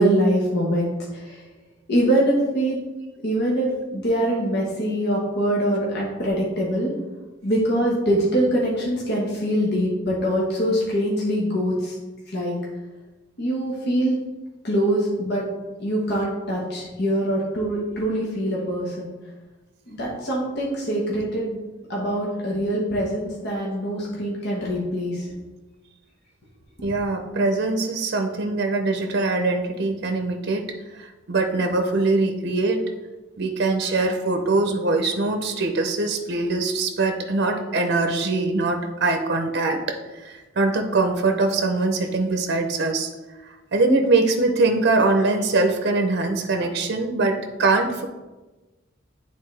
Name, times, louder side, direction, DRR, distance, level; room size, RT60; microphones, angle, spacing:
voice 1, 0.0-1.5 1.9-2.8 3.2-6.9 7.4-12.0 12.3-12.6 13.4-14.2 14.6-15.4 15.8-19.1 19.9-21.6 21.9-25.3, right 1 dB, 60° left, -4 dB, 1.3 m, -23 dB
voice 2, 26.8-30.6 30.9-32.8 33.4-43.1 43.4-48.0, right 3 dB, 55° right, 4 dB, 0.6 m, -22 dB
9.1 x 4.0 x 3.2 m, 1.2 s
head